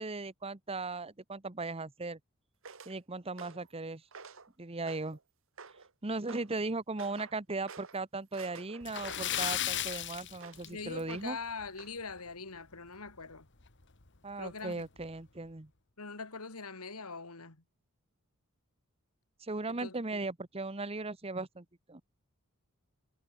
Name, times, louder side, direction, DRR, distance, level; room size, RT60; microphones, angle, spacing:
voice 1, 0.0-2.2 2.9-4.0 4.6-5.2 6.0-11.4 14.2-15.7 19.4-22.0, right 3 dB, 25° right, 1.1 m, -37 dB
sound 1, 2.6-3.0 3.4-3.7 4.1-4.5 4.9-5.2 5.6-5.9 6.3-6.5 7.0-7.4 7.7-8.0 8.3-10.0 10.4-10.7 11.1-11.4 11.8-12.0, right 5 dB, 65° right, 1.9 m, -50 dB
Splash splatter, 8.8-11.2 11.5-11.7 12.1-12.2 13.6-13.7 14.1-14.2 14.8-15.0, left 11 dB, 55° left, 1.7 m, -35 dB
voice 2, 10.6-13.5 14.4-14.9 16.0-17.6 19.7-20.2, left 4 dB, 85° left, 2.7 m, -43 dB
head